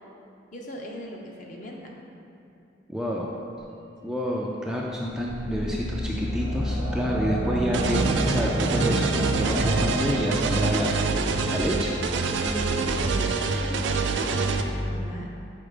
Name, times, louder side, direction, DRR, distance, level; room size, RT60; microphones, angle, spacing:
voice 1, 0.5-2.0 12.4-15.3, equal, 45° left, 0 dB, 0.7 m, -39 dB
voice 2, 2.9-3.3 4.0-10.9 11.5-12.0, equal, 5° right, -3 dB, 0.3 m, -28 dB
sound 1, 5.0-10.6, equal, 80° left, 1.2 m, -29 dB
sound 2, 7.7-14.6, right 4 dB, 75° right, 0.4 m, -26 dB
5.1 x 4.3 x 4.9 m, 2.7 s
head